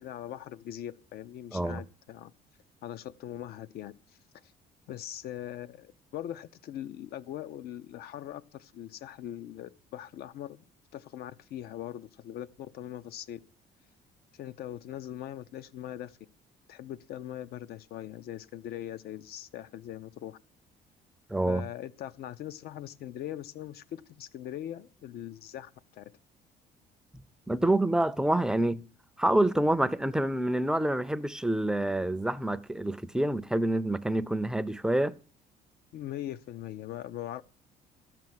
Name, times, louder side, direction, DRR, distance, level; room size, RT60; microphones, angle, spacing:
voice 1, 0.0-2.3 2.8-3.9 4.4-4.5 4.9-10.6 10.9-13.4 14.3-16.2 16.7-20.4 21.5-26.1 35.9-37.4, left 12 dB, 70° left, 0.6 m, -41 dB
voice 2, 1.5-1.8 21.3-21.6 27.1-28.8 29.2-35.2, right 1 dB, 5° right, 0.5 m, -27 dB
13.0 x 6.0 x 9.5 m
cardioid pair, 110°, 17 cm